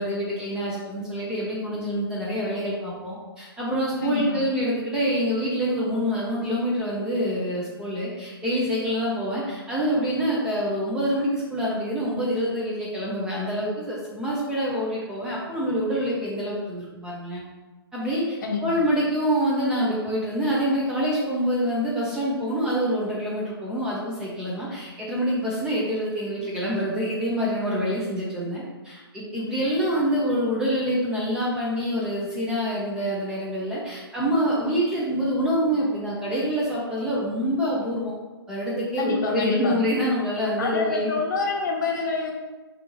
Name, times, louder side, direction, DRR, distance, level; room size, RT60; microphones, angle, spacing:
voice 1, 0.0-17.4 17.9-38.1 38.5-41.1, equal, 5° right, -7 dB, 0.4 m, -26 dB
voice 2, 4.0-4.4 18.4-18.8 39.0-39.8 40.6-42.3, left 4 dB, 50° left, 0 dB, 0.7 m, -27 dB
3.4 x 2.6 x 2.9 m, 1.2 s
hypercardioid pair, 145°, 13 cm